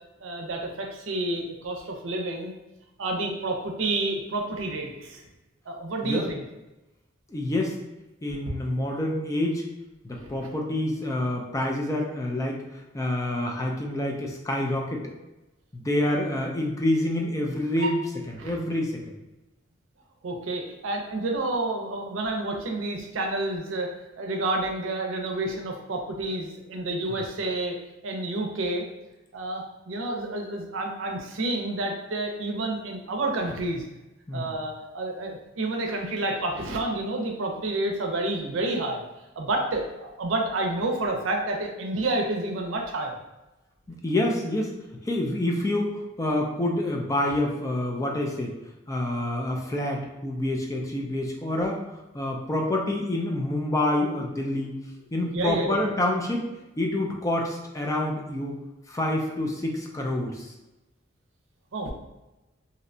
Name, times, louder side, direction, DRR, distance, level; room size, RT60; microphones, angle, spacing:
voice 1, 0.2-2.5 3.0-5.2 5.7-6.4 10.2-10.5 17.8-18.0 18.4-18.6 20.2-23.9 24.2-27.8 28.0-28.9 29.3-33.8 34.3-39.0 39.4-43.2 55.3-55.8 61.7-61.9, right 2 dB, 85° right, 2 dB, 0.5 m, -29 dB
voice 2, 7.3-7.8 8.2-9.6 10.0-12.6 12.9-15.1 15.7-18.0 18.4-19.0 34.3-34.5 43.9-44.7 45.1-48.6 48.9-51.8 52.1-54.7 55.1-56.4 56.8-58.6 58.9-60.5, left 1 dB, 15° left, 0 dB, 0.3 m, -27 dB
2.7 x 2.1 x 2.6 m, 1.0 s
head